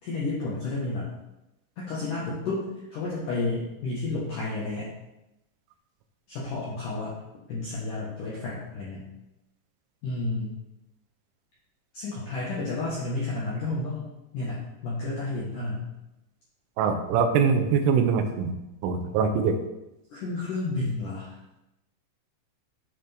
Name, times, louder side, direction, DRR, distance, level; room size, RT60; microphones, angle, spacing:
voice 1, 0.0-1.1 1.8-2.6 2.9-4.9 6.3-7.2 7.5-9.1 10.0-10.5 11.9-14.0 14.3-15.9 20.1-21.4, left 2 dB, 75° left, -7 dB, 1.9 m, -31 dB
voice 2, 16.8-18.6 18.8-19.6, right 6 dB, 90° right, 5 dB, 3.2 m, -23 dB
11.0 x 4.2 x 3.5 m, 0.93 s
omnidirectional pair, 5.7 m